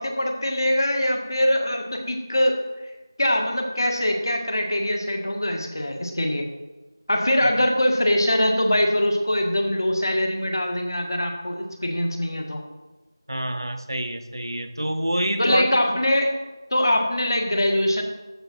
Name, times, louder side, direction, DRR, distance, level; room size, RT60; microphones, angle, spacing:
voice 1, 0.0-2.6 3.2-6.5 7.1-12.6 15.4-16.4 16.7-18.0, left 1 dB, 60° left, 3 dB, 1.7 m, -23 dB
voice 2, 13.3-15.6, right 1 dB, 85° right, 8 dB, 0.9 m, -27 dB
13.5 x 5.9 x 4.3 m, 1.1 s
figure-of-eight pair, 175°, 2 cm